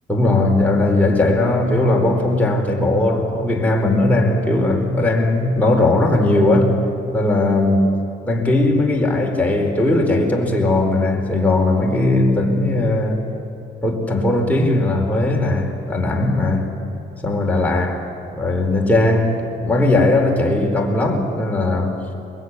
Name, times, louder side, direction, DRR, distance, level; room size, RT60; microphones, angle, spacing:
voice 1, 0.1-6.8 7.1-7.8 8.2-13.2 13.8-16.7 17.2-17.9 18.3-22.0, left 2 dB, 10° left, 0 dB, 4.5 m, -18 dB
23.0 x 21.5 x 9.8 m, 2.9 s
cardioid pair, 90°, 20 cm